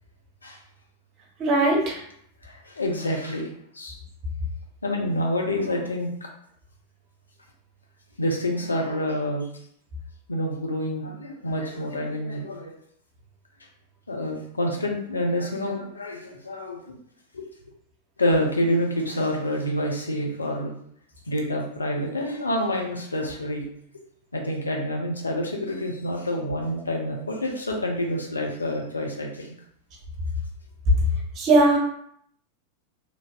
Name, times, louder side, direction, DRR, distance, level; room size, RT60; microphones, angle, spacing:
voice 1, 1.4-2.0 31.4-31.8, right 2 dB, 35° right, 0 dB, 0.8 m, -19 dB
voice 2, 2.4-4.0 4.8-6.1 8.2-9.5 10.3-12.8 14.1-17.0 17.3-17.5 18.2-20.7 21.3-23.7 24.3-29.5, left 1 dB, 75° left, 1 dB, 0.5 m, -27 dB
3.2 x 2.5 x 2.3 m, 0.67 s
figure-of-eight pair, 90°, 0 cm